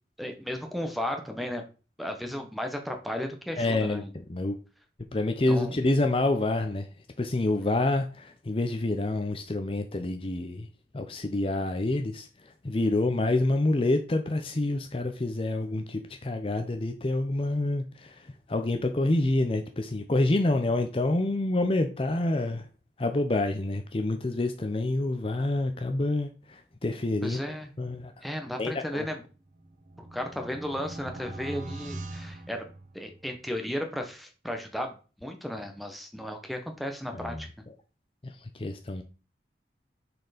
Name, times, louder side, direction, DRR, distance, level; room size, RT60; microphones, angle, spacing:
voice 1, 0.2-1.6 2.0-4.1 5.5-5.7 27.2-27.7 28.2-29.2 30.0-32.7 32.9-37.5, equal, ahead, 1.0 m, -34 dB
voice 2, 3.6-4.0 4.3-4.5 5.1-6.9 7.2-10.7 10.9-22.7 23.0-27.4 27.8-28.1 28.6-29.1 37.1-37.4 38.2-39.0, left 2 dB, 30° left, 0.6 m, -27 dB
sound 1, 29.3-33.3, right 2 dB, 45° right, 0.8 m, -41 dB
6.6 x 4.4 x 5.0 m
head